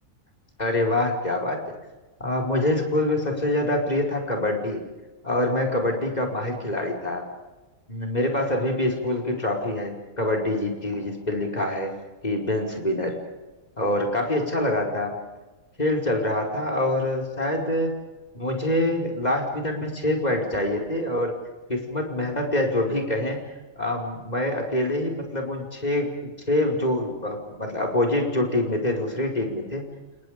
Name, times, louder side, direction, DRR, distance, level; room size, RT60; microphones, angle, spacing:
voice 1, 0.6-1.6 2.2-4.9 5.2-7.2 7.9-11.9 12.2-13.2 13.8-15.2 15.8-18.0 18.3-21.4 21.7-23.4 23.8-26.1 26.5-29.8, left 1 dB, 30° left, 1 dB, 5.5 m, -25 dB
29.5 x 29.0 x 5.2 m, 1.1 s
omnidirectional pair, 1.4 m